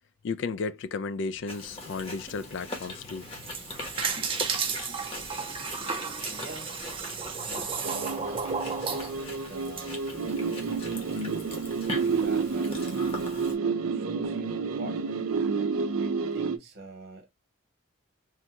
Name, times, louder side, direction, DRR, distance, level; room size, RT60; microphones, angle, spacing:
voice 1, 0.2-3.3, left 4 dB, 60° left, 0.3 m, -33 dB
Chewing mastication, 1.5-13.5, left 2 dB, 30° left, 0.9 m, -41 dB
sound 1, 3.2-9.8, right 5 dB, 25° right, 0.5 m, -33 dB
voice 2, 6.2-6.7 7.4-10.1 10.6-11.2 11.9-13.1 13.9-15.0 16.0-17.3, right 2 dB, 50° right, 1.0 m, -44 dB
sound 2, 7.8-16.6, right 5 dB, 85° right, 0.5 m, -30 dB
3.5 x 2.2 x 2.8 m
head